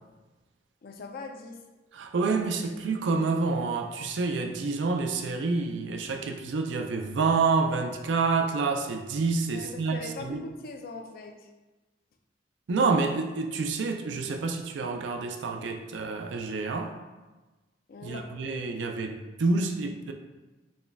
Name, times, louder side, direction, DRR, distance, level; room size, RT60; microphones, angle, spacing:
voice 1, 0.8-1.6 9.5-11.5 17.9-18.3, left 3 dB, 55° left, 4 dB, 0.4 m, -41 dB
voice 2, 1.9-10.4 12.7-16.9 18.0-20.1, right 4 dB, 75° right, 4 dB, 0.4 m, -28 dB
4.2 x 2.2 x 3.3 m, 1.2 s
head